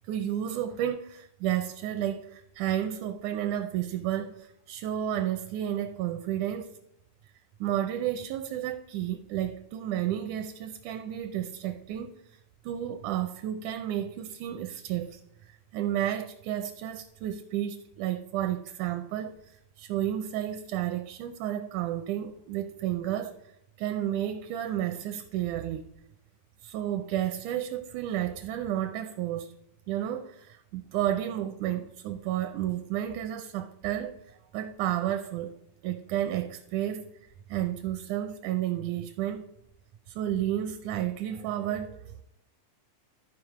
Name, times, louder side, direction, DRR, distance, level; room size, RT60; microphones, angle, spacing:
voice 1, 0.1-6.8 7.6-12.1 12.6-15.2 15.7-23.4 23.8-25.9 26.6-29.5 29.9-35.5 35.8-37.1 37.5-39.5 40.1-42.2, right 11 dB, 80° right, 8 dB, 1.8 m, -31 dB
13.0 x 4.8 x 4.8 m, 0.79 s
omnidirectional pair, 3.9 m